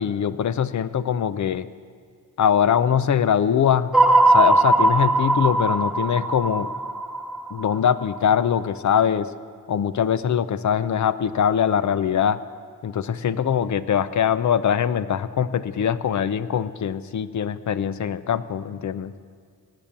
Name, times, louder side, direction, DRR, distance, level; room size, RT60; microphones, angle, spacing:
voice 1, 0.0-1.7 2.4-3.9 4.3-6.7 7.5-9.3 9.7-12.4 12.8-19.1, left 8 dB, 55° left, 14 dB, 0.6 m, -22 dB
sound 1, 3.9-8.2, right 2 dB, ahead, 0.9 m, -19 dB
17.5 x 8.9 x 6.9 m, 2.1 s
cardioid pair, 85°, 34 cm